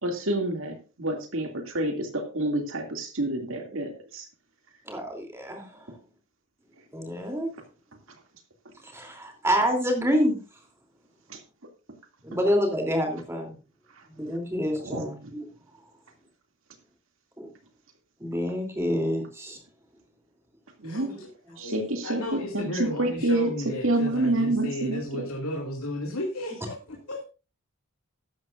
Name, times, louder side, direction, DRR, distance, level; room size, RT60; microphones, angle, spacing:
voice 1, 0.0-4.3 5.9-6.0 11.3-11.4 14.8-15.3 20.8-21.1 21.6-25.3, right 1 dB, 60° right, 4 dB, 2.4 m, -28 dB
voice 2, 4.9-5.7 6.9-7.5 8.9-10.4 12.2-13.6 14.1-15.4 17.4-17.5 18.2-19.6 21.0-21.2, equal, 10° right, 2 dB, 3.0 m, -27 dB
voice 3, 20.8-21.3 21.5-27.2, left 1 dB, 75° left, 0 dB, 2.4 m, -34 dB
13.5 x 11.5 x 2.5 m, 0.33 s
head